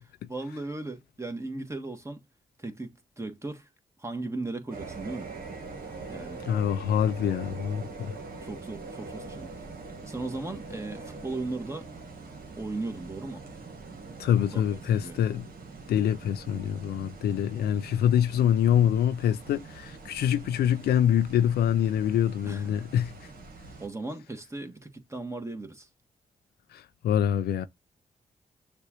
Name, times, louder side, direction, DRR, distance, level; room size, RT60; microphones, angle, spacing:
voice 1, 0.3-2.2 2.6-3.7 4.0-5.3 6.1-6.4 8.4-9.5 10.1-11.9 12.6-13.4 14.5-14.6 15.0-15.2 22.4-22.8 23.8-25.9, right 2 dB, 15° right, 1.6 m, -36 dB
sound 1, 4.7-23.9, right 3 dB, 65° right, 1.4 m, -43 dB
voice 2, 6.5-8.1 14.2-15.4 15.9-23.3 26.7-27.7, left 9 dB, 85° left, 0.4 m, -25 dB
6.6 x 2.5 x 3.0 m
supercardioid pair, 45°, 16 cm